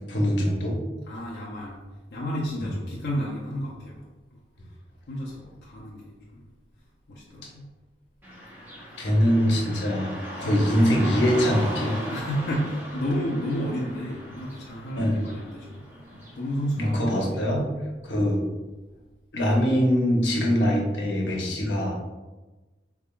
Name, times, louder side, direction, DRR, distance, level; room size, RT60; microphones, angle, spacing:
voice 1, 0.1-0.8 2.6-2.7 9.0-10.1 10.4-12.0 15.0-15.2 16.8-17.7 18.0-18.4 19.3-22.0, equal, 90° left, -1 dB, 0.9 m, -23 dB
voice 2, 1.1-1.8 2.1-4.0 5.1-6.4 7.1-7.7 10.4-10.6 12.1-16.0 16.4-17.0 17.3-17.6, equal, 65° left, -5 dB, 0.6 m, -31 dB
Car passing by / Traffic noise roadway noise, 8.2-17.2, equal, 10° right, 0.9 m, -38 dB
4.0 x 3.5 x 2.3 m, 1.2 s
head